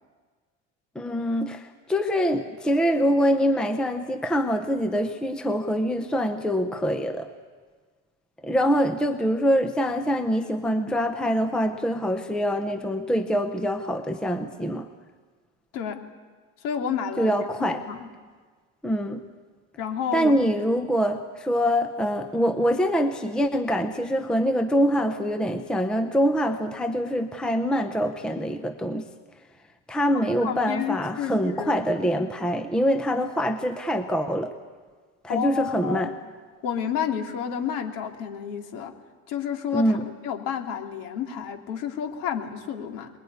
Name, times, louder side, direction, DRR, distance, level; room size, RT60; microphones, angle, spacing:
voice 1, 1.0-7.3 8.4-14.9 17.2-17.8 18.8-19.2 20.1-29.1 29.9-34.5 35.2-36.1 39.7-40.1, equal, ahead, 7 dB, 0.7 m, -24 dB
voice 2, 16.6-17.3 17.7-18.1 19.8-20.4 30.4-31.8 35.3-36.1 36.6-38.9 39.3-39.8 40.2-43.1, left 8 dB, 55° left, 4 dB, 3.1 m, -30 dB
24.5 x 21.5 x 9.5 m, 1.5 s
cardioid pair, 160°, 38 cm